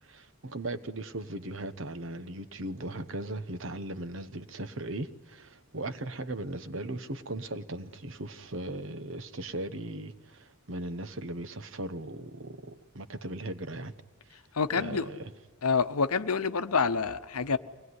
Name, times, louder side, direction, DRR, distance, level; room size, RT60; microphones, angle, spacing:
voice 1, 0.0-13.9 14.3-14.4 14.7-15.3, right 1 dB, 60° right, 1.1 m, -38 dB
voice 2, 14.5-15.1 15.6-17.6, left 5 dB, 85° left, 0.9 m, -27 dB
24.5 x 19.5 x 9.7 m
head